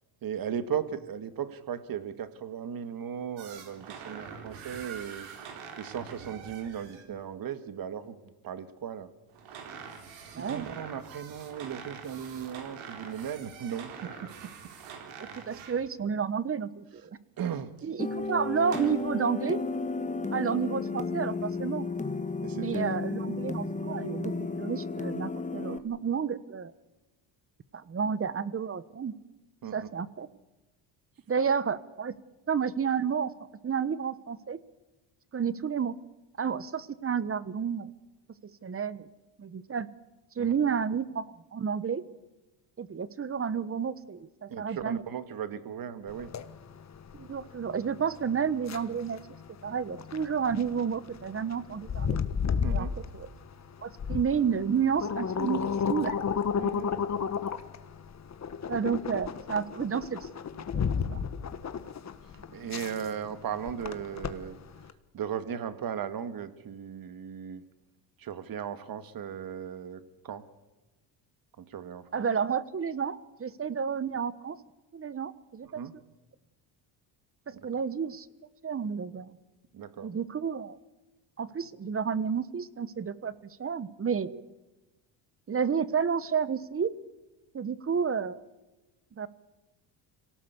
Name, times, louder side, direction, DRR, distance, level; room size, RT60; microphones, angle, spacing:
voice 1, 0.2-9.1 10.4-14.5 17.4-17.9 22.4-22.8 25.7-25.9 29.6-29.9 40.4-40.5 44.5-46.3 52.6-52.9 56.6-57.2 62.5-64.6 65.1-67.6 68.2-70.5 71.6-72.2 75.6-75.9 79.7-80.1, right 8 dB, 45° right, 12 dB, 2.0 m, -37 dB
sound 1, 3.4-7.1 9.3-15.9 18.3-18.9, right 6 dB, 80° right, 4.5 m, -45 dB
voice 2, 10.3-10.7 15.2-17.1 17.8-19.6 20.3-21.9 22.5-26.7 27.7-29.1 29.7-30.3 31.3-32.2 32.5-33.3 33.6-34.6 35.3-35.9 36.4-37.9 38.4-39.1 39.4-39.9 40.4-41.3 41.5-42.0 42.8-45.0 47.2-49.2 49.6-52.2 52.7-52.9 53.1-53.3 53.8-55.6 55.9-56.2 58.7-60.3 61.1-61.2 72.1-74.6 74.9-75.8 77.5-78.3 78.6-79.3 80.0-80.8 81.4-83.3 83.6-84.4 85.5-87.0 87.5-88.4 89.2-89.3, right 6 dB, 30° right, 17 dB, 1.2 m, -31 dB
sound 2, 18.0-25.8, left 3 dB, 15° left, 1.5 m, -33 dB
sound 3, 46.1-64.9, left 6 dB, 35° left, 1.5 m, -33 dB
26.0 x 18.0 x 8.3 m, 1.1 s
cardioid pair, 100°, 47 cm